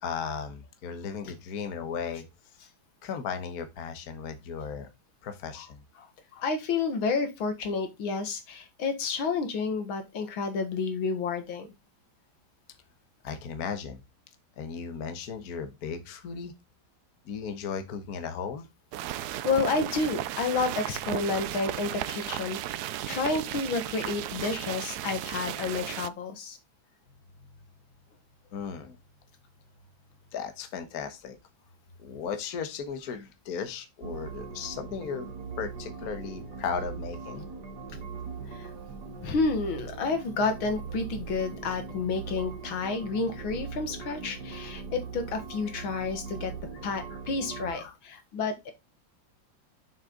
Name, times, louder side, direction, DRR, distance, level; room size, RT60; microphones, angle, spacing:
voice 1, 0.0-2.2 3.0-4.9 5.2-5.8 13.2-14.0 14.6-16.5 17.3-18.7 28.5-29.0 30.3-31.4 32.0-35.3 35.6-37.4 47.7-48.0, left 6 dB, 50° left, 1.6 m, -36 dB
voice 2, 6.3-11.7 19.4-26.6 38.5-38.7 39.2-46.5 46.8-48.7, left 4 dB, 90° left, 2.3 m, -30 dB
sound 1, 18.9-26.1, right 13 dB, 75° right, 0.9 m, -35 dB
sound 2, 34.0-47.7, right 5 dB, 60° right, 1.8 m, -40 dB
6.7 x 6.5 x 3.8 m
omnidirectional pair, 2.2 m